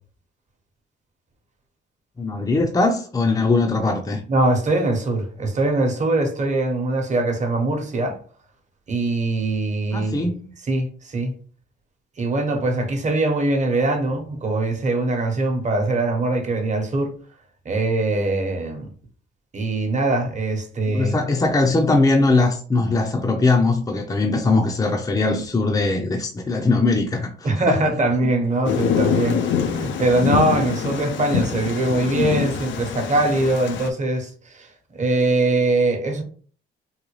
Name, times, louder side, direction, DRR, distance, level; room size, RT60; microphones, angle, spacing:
voice 1, 2.2-4.2 9.9-10.5 20.9-27.8, left 3 dB, 15° left, 0.5 m, -20 dB
voice 2, 4.3-8.2 8.9-10.3 10.7-11.3 12.2-17.1 17.6-18.9 19.5-21.1 27.4-36.2, right 2 dB, 35° right, 1.0 m, -22 dB
Thunder, 28.6-33.9, left 7 dB, 70° left, 0.5 m, -24 dB
3.9 x 2.2 x 3.1 m
cardioid pair, 90°, 20 cm